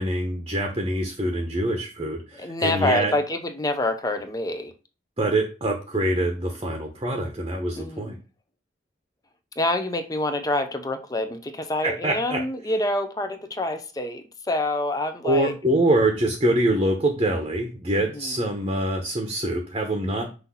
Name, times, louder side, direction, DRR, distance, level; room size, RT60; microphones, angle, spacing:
voice 1, 0.0-3.1 5.2-8.2 11.8-12.4 15.2-20.3, right 1 dB, 25° right, 0.9 m, -24 dB
voice 2, 2.4-4.7 7.8-8.2 9.6-15.5 17.9-18.4, left 1 dB, 20° left, 0.6 m, -27 dB
6.1 x 2.7 x 5.5 m
head